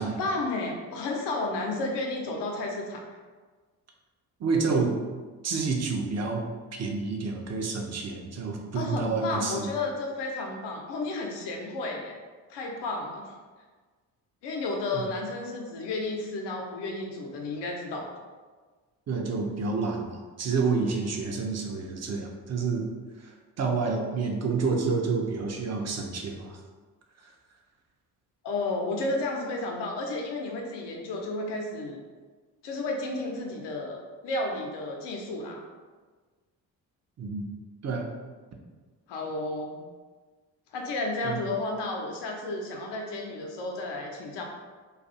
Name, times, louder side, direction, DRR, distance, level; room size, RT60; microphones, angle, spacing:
voice 1, 0.0-3.0 8.7-12.2 12.5-13.4 14.4-18.1 23.9-24.3 28.4-32.0 32.6-35.6 39.1-39.8 40.7-44.4, left 2 dB, 55° left, 1 dB, 0.8 m, -32 dB
voice 2, 4.4-4.9 5.4-6.5 6.7-9.7 14.9-15.0 19.1-22.9 23.2-26.6 37.2-37.5 37.8-38.0 41.2-41.4, right 4 dB, 30° right, 1 dB, 0.7 m, -29 dB
2.5 x 2.4 x 4.1 m, 1.4 s
figure-of-eight pair, 45°, 50 cm